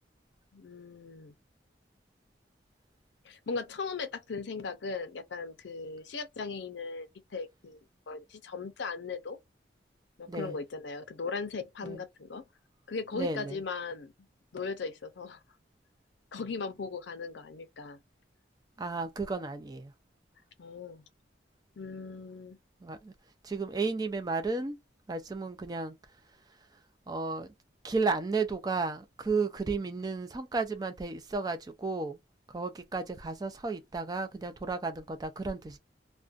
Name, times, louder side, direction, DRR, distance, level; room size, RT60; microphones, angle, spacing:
voice 1, 0.5-1.3 3.2-7.8 8.1-9.4 10.2-12.4 12.9-14.1 14.5-15.4 16.3-18.0 20.6-21.0 21.8-22.6, left 4 dB, 70° left, 0.5 m, -38 dB
voice 2, 13.1-13.6 18.8-19.9 22.8-23.1 23.4-24.8 25.1-26.0 27.1-27.5 27.8-32.2 32.5-35.8, right 3 dB, 20° right, 0.3 m, -33 dB
2.4 x 2.1 x 2.3 m
head